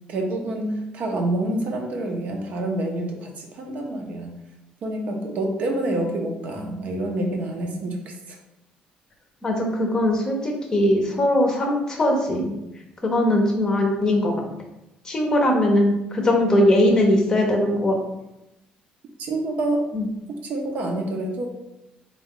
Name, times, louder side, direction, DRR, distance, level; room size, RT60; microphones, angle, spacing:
voice 1, 0.1-4.3 4.8-8.4 19.2-19.9 20.3-21.5, right 1 dB, 55° right, 2 dB, 0.6 m, -27 dB
voice 2, 9.4-12.5 13.0-14.3 15.0-18.0 19.9-20.1, left 1 dB, 25° left, 1 dB, 0.7 m, -20 dB
3.5 x 2.3 x 3.6 m, 0.90 s
cardioid pair, 135°, 3 cm